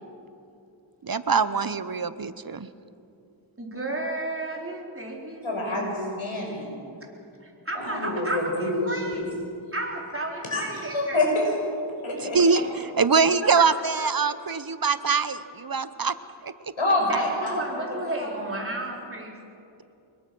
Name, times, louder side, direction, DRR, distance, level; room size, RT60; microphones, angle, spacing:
voice 1, 1.0-2.7 12.2-16.1 16.4-16.5, right 5 dB, 45° right, 14 dB, 0.9 m, -23 dB
voice 2, 3.6-5.9 7.4-9.4 9.7-11.2 13.4-13.7 14.0-14.1 17.0-19.3, right 1 dB, 25° right, -1 dB, 4.4 m, -33 dB
voice 3, 5.4-6.8 7.7-9.2 10.5-10.6 10.9-11.5 12.0-12.4 16.8-17.9 18.2-18.3, left 2 dB, 80° left, -1 dB, 6.5 m, -27 dB
24.5 x 21.5 x 6.2 m, 2.6 s
wide cardioid pair, 50°, 48 cm